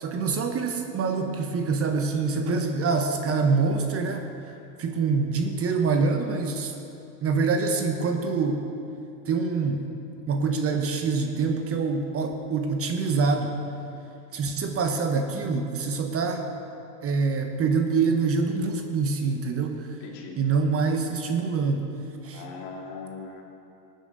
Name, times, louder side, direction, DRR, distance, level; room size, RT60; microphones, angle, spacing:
voice 1, 0.0-4.5 4.8-6.7 7.2-8.6 9.3-9.8 10.3-13.6 14.3-16.5 17.0-19.9 20.4-21.9 22.2-22.4, right 4 dB, 30° right, 4 dB, 1.2 m, -25 dB
voice 2, 20.0-20.4 22.2-23.4, left 4 dB, 55° left, 0 dB, 2.6 m, -40 dB
18.0 x 9.4 x 4.1 m, 2.7 s
hypercardioid pair, 105°, 47 cm